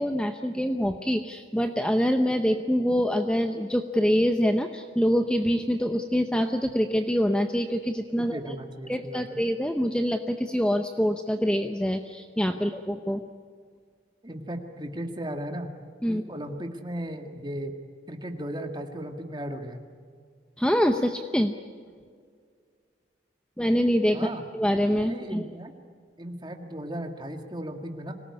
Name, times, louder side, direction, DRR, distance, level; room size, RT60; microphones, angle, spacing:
voice 1, 0.0-8.4 8.9-13.2 16.0-16.2 20.6-21.5 23.6-25.4, equal, 5° left, 6 dB, 0.7 m, -25 dB
voice 2, 8.2-9.4 14.2-15.7 16.1-17.7 18.1-19.8 24.1-24.4 25.0-25.7 26.2-28.1, right 1 dB, 25° right, 5 dB, 1.9 m, -36 dB
25.5 x 18.0 x 9.8 m, 2.1 s
head